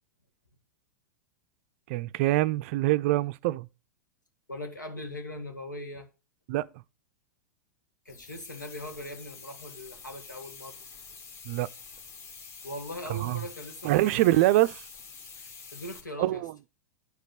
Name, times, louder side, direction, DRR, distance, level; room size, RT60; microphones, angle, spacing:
voice 1, 1.9-3.7 6.5-6.7 11.4-11.7 13.1-13.4 13.8-14.9 16.2-16.5, right 17 dB, 45° right, 0.4 m, -24 dB
voice 2, 4.5-6.1 8.1-10.8 12.6-14.3 15.7-16.4, left 1 dB, 85° left, 2.1 m, -40 dB
sound 1, 8.1-16.0, left 5 dB, 30° left, 1.9 m, -47 dB
9.4 x 5.2 x 6.4 m
figure-of-eight pair, 95°, 10 cm